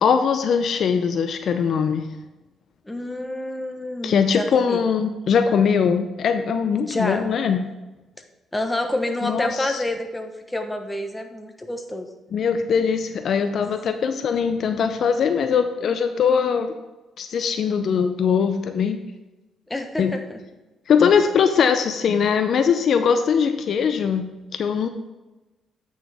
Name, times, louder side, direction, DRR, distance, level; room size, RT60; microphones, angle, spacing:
voice 1, 0.0-2.1 4.0-7.6 9.2-9.7 12.3-16.7 17.2-19.0 20.0-20.1 20.9-24.9, left 6 dB, 60° left, 8 dB, 0.6 m, -21 dB
voice 2, 2.8-4.8 6.8-7.3 8.5-12.1 13.4-13.6 19.7-20.4, left 1 dB, 10° left, 5 dB, 1.1 m, -28 dB
9.0 x 6.3 x 3.5 m, 1.1 s
cardioid pair, 90°, 0 cm